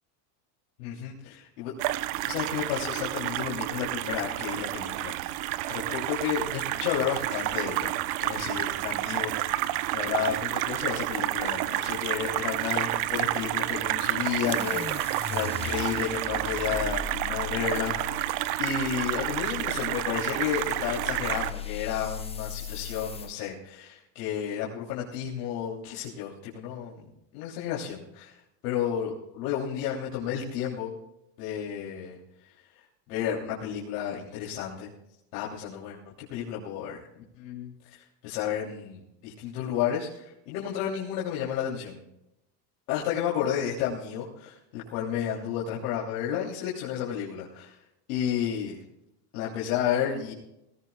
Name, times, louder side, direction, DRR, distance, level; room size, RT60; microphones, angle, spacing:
voice 1, 0.8-1.7 2.2-7.9 8.2-27.0 27.3-28.4 28.6-30.9 31.4-34.9 35.3-42.0 42.9-47.8 48.1-48.8 49.3-50.3, left 9 dB, 80° left, -4 dB, 3.3 m, -32 dB
sound 1, 1.8-21.5, right 16 dB, 70° right, 0.9 m, -30 dB
sound 2, 14.4-23.3, left 7 dB, 15° left, 1.0 m, -39 dB
20.5 x 18.0 x 2.4 m, 0.85 s
supercardioid pair, 140°, 46 cm